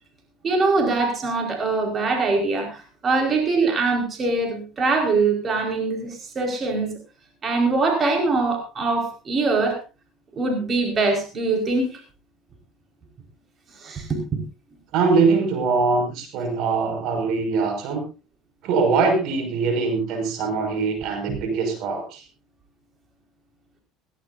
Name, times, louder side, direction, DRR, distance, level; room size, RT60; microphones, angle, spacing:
voice 1, 0.4-6.9 7.4-9.8 10.3-12.0 13.7-14.4 21.3-21.4, right 3 dB, 35° right, 3 dB, 4.9 m, -23 dB
voice 2, 14.9-18.0 18.6-22.2, right 4 dB, 65° right, 6 dB, 5.9 m, -22 dB
18.0 x 18.0 x 2.7 m, 0.30 s
supercardioid pair, 100°, 0 cm